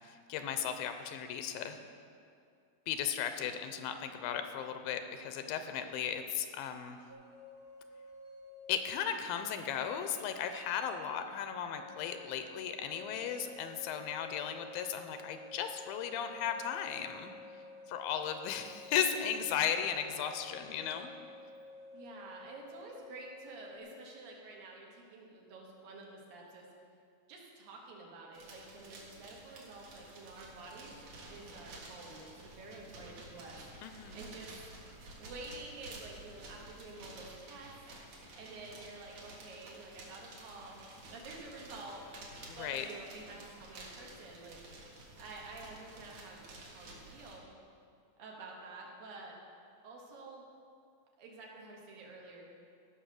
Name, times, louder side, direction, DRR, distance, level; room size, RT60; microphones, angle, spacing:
voice 1, 0.3-1.8 2.9-7.0 8.7-17.3 17.9-21.1 33.8-34.2 42.5-42.9, left 8 dB, 85° left, 8 dB, 2.5 m, -36 dB
sound 1, 7.1-23.8, left 2 dB, 10° right, 1.0 m, -52 dB
voice 2, 21.9-26.7 27.3-31.0 31.3-34.5 35.2-37.7 38.4-40.8 41.1-42.0 42.6-44.6 45.2-47.5 48.2-49.4 49.8-50.4 51.2-52.5, right 3 dB, 75° right, -2 dB, 3.4 m, -49 dB
sound 2, 28.3-47.4, right 2 dB, 60° right, 2.9 m, -52 dB
16.0 x 6.0 x 6.5 m, 2.4 s
omnidirectional pair, 4.2 m